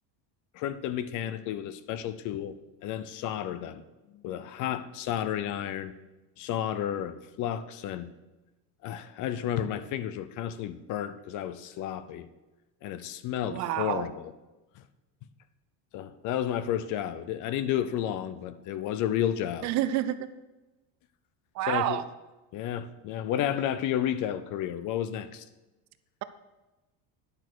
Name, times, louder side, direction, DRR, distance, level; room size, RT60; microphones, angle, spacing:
voice 1, 0.5-2.6 2.8-3.8 4.1-5.9 6.4-8.1 8.8-12.3 12.8-14.3 14.8-14.9 15.9-19.7 21.7-22.0 22.5-25.4, left 10 dB, 45° left, 0.6 m, -32 dB
voice 2, 13.4-14.1 19.6-20.3 21.6-22.0, right 12 dB, 45° right, 0.5 m, -28 dB
10.5 x 6.9 x 6.1 m
cardioid pair, 175°, 41 cm